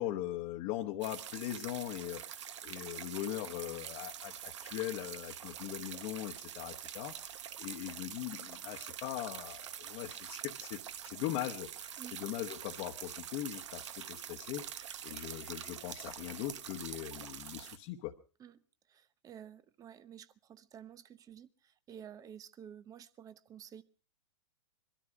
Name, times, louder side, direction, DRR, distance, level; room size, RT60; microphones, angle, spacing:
voice 1, 0.0-18.1, left 13 dB, 45° left, 1.2 m, -40 dB
sound 1, 1.0-17.8, right 9 dB, 70° right, 1.1 m, -45 dB
voice 2, 18.9-23.8, right 9 dB, 20° right, 0.8 m, -52 dB
22.5 x 13.0 x 4.9 m
hypercardioid pair, 115°, 16 cm